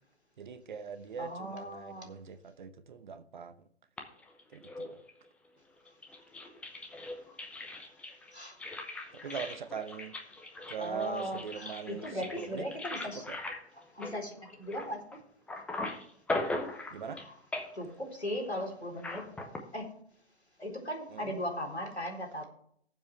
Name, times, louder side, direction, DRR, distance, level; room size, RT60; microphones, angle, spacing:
voice 1, 0.4-3.5 4.5-5.0 9.1-10.2 10.7-12.7 13.0-13.4 16.9-17.2 21.1-21.3, right 7 dB, 50° right, 12 dB, 0.9 m, -41 dB
voice 2, 1.2-2.1 8.3-8.6 9.2-9.4 10.8-13.2 13.9-14.3 14.6-15.0 17.7-19.3 19.7-19.9 20.6-22.4, equal, 90° left, 1 dB, 4.0 m, -38 dB
sound 1, 4.0-5.3 5.9-15.2 15.5-17.3 17.5-17.9 19.0-19.6, left 2 dB, 5° left, 0.8 m, -39 dB
18.5 x 7.4 x 3.4 m, 0.65 s
figure-of-eight pair, 125°, 32 cm